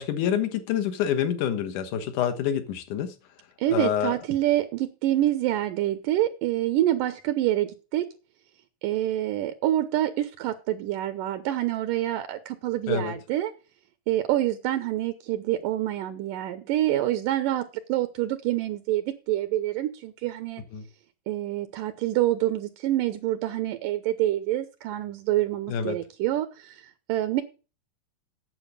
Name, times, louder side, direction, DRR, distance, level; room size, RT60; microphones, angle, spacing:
voice 1, 0.0-3.2 3.7-4.1 12.9-13.2 20.7-20.9 25.7-26.0, left 9 dB, 65° left, 8 dB, 2.6 m, -27 dB
voice 2, 3.6-8.1 8.8-13.5 14.1-20.6 21.3-26.8 27.1-27.4, right 13 dB, 75° right, 10 dB, 2.3 m, -26 dB
9.2 x 7.7 x 6.8 m, 0.33 s
omnidirectional pair, 4.1 m